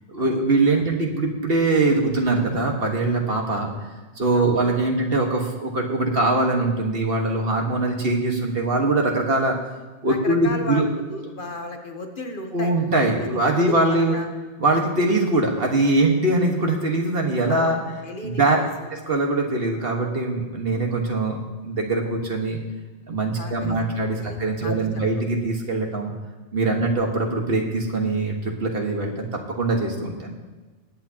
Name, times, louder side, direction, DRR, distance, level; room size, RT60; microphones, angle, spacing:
voice 1, 0.1-3.7 4.2-9.6 10.0-10.9 12.5-14.2 14.6-17.8 18.2-18.6 18.9-22.6 23.1-26.1 26.5-29.3 29.6-30.4, right 2 dB, 55° right, 1 dB, 1.7 m, -22 dB
voice 2, 10.1-12.7 13.5-14.3 14.7-14.8 17.5-18.9 23.4-23.7 24.2-24.7, left 2 dB, 50° left, 4 dB, 1.1 m, -35 dB
20.0 x 8.6 x 2.9 m, 1.3 s
omnidirectional pair, 1.2 m